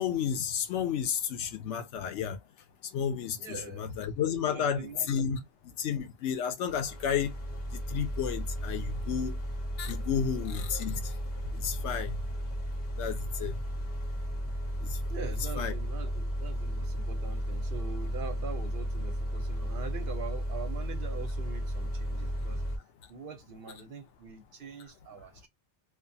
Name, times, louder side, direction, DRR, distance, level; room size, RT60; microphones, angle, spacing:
voice 1, 0.0-2.4 2.9-5.4 5.8-7.3 7.7-9.4 9.8-11.1 11.5-12.2 13.0-13.5 14.9-15.0 15.6-15.7, left 8 dB, 85° left, 0.9 m, -32 dB
voice 2, 3.4-3.8 4.5-5.1 15.1-22.6 23.1-25.5, right 5 dB, 55° right, 0.9 m, -43 dB
sound 1, 6.7-22.8, equal, 40° left, 1.1 m, -34 dB
2.4 x 2.3 x 2.6 m
omnidirectional pair, 1.2 m